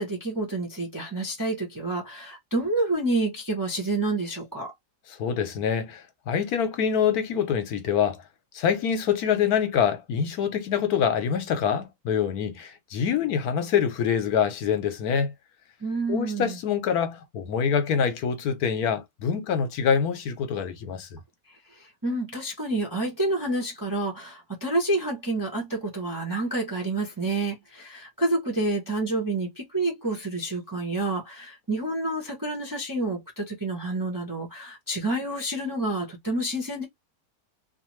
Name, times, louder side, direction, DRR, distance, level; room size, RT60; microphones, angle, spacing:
voice 1, 0.0-4.7 15.8-16.6 21.7-36.8, right 2 dB, 20° right, 0.5 m, -28 dB
voice 2, 5.1-8.2 8.5-15.3 16.1-21.2, left 7 dB, 75° left, 1.2 m, -25 dB
2.5 x 2.5 x 3.0 m
omnidirectional pair, 1.6 m